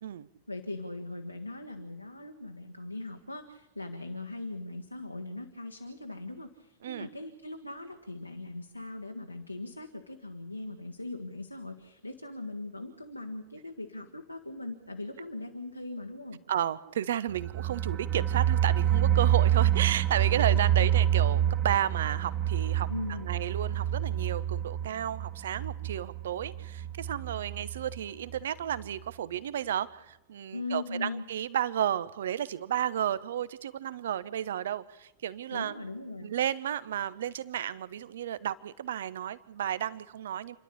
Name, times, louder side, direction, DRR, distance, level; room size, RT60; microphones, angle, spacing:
voice 1, 0.5-16.4 20.5-20.6 22.9-23.3 30.5-31.2 35.5-36.3, left 2 dB, 85° left, 4 dB, 1.6 m, -40 dB
voice 2, 16.5-22.9 23.2-35.7 36.2-40.6, right 10 dB, 60° right, 17 dB, 1.0 m, -32 dB
sound 1, 17.3-28.0 28.3-28.4 28.7-28.8, right 11 dB, 30° right, 1.6 m, -27 dB
28.5 x 11.5 x 8.4 m, 0.94 s
figure-of-eight pair, 90°, 0 cm